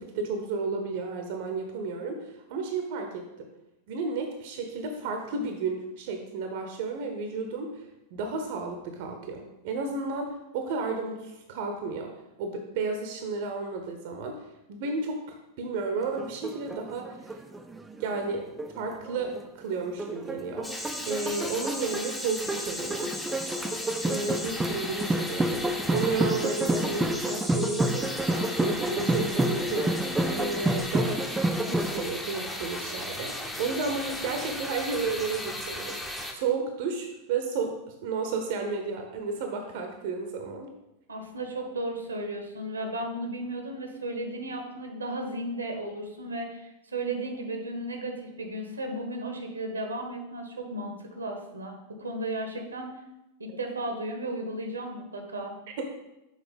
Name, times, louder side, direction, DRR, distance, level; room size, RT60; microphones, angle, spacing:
voice 1, 0.0-3.5 3.9-7.8 8.1-12.1 12.4-14.4 14.7-15.2 15.6-17.4 18.0-18.4 18.7-20.8 21.1-23.2 24.0-25.6 25.9-31.2 31.6-37.7 38.0-40.7 55.8-55.9, right 4 dB, 50° right, 4 dB, 0.8 m, -32 dB
sound 1, 16.0-19.5 20.0-32.0, right 1 dB, 10° right, 0.5 m, -29 dB
sound 2, 20.6-36.3, left 1 dB, 5° left, 0.9 m, -36 dB
voice 2, 41.1-52.9 53.4-55.6, right 1 dB, 75° right, 4 dB, 1.0 m, -34 dB
6.6 x 4.2 x 5.2 m, 0.93 s
figure-of-eight pair, 90°, 0 cm